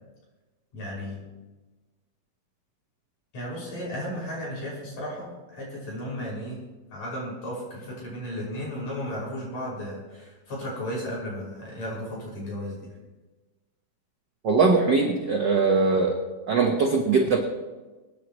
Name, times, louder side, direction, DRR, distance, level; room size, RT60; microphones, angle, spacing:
voice 1, 0.7-1.2 3.3-6.6 6.9-12.9, equal, 60° left, -5 dB, 7.0 m, -34 dB
voice 2, 14.4-16.2 16.5-17.4, right 4 dB, 65° right, 2 dB, 1.1 m, -21 dB
24.5 x 10.0 x 3.1 m, 1.2 s
omnidirectional pair, 3.6 m